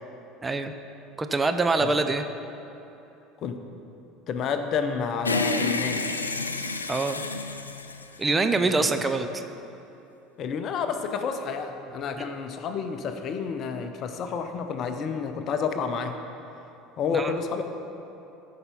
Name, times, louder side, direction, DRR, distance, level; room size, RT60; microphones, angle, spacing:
voice 1, 0.4-0.7 1.2-2.2 6.9-7.2 8.2-9.3 17.1-17.4, right 3 dB, 20° right, 7 dB, 0.6 m, -24 dB
voice 2, 4.3-6.0 8.6-9.1 10.4-16.2 17.0-17.6, left 6 dB, 45° left, 7 dB, 0.7 m, -30 dB
sound 1, 5.2-8.7, left 3 dB, 85° left, 0.4 m, -29 dB
13.5 x 5.6 x 5.4 m, 3.0 s
figure-of-eight pair, 70°, 0 cm